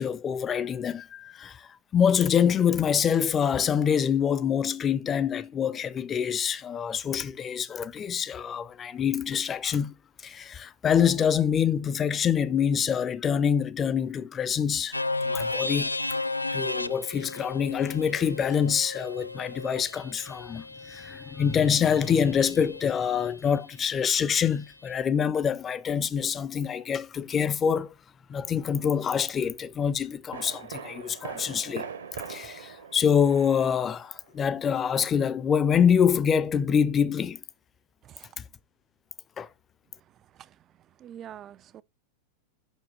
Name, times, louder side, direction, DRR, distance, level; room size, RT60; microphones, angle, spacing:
voice 1, 0.0-9.9 10.2-15.9 16.5-27.9 28.3-31.9 32.3-37.4 38.4-38.5 39.4-39.5, left 7 dB, 25° left, 0.5 m, -26 dB
sound 1, 14.9-22.8, left 2 dB, 85° left, 0.3 m, -34 dB
sound 2, 29.4-29.5 30.3-34.4 34.7-34.8, right 7 dB, 70° right, 1.3 m, -41 dB
voice 2, 41.0-41.8, right 10 dB, 30° right, 0.3 m, -45 dB
7.2 x 5.8 x 4.0 m
figure-of-eight pair, 90°, 0 cm